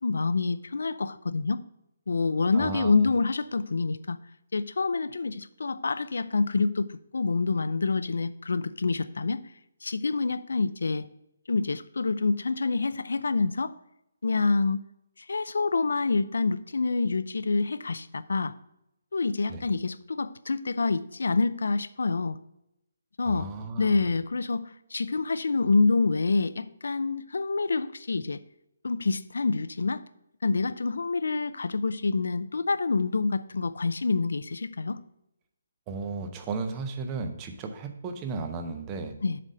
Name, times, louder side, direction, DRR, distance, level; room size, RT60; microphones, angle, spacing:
voice 1, 0.0-1.6 2.1-4.2 4.5-9.4 9.8-11.1 11.5-13.7 14.2-14.8 15.3-18.5 19.1-22.4 23.2-23.5 23.8-28.4 28.8-30.0 30.4-35.0 39.2-39.4, left 3 dB, 85° left, 15 dB, 0.4 m, -27 dB
voice 2, 2.5-3.1 19.5-19.6 23.2-24.0 35.9-39.2, right 4 dB, 15° right, 6 dB, 0.5 m, -34 dB
7.4 x 4.0 x 6.2 m, 0.82 s
hypercardioid pair, 175°, 0 cm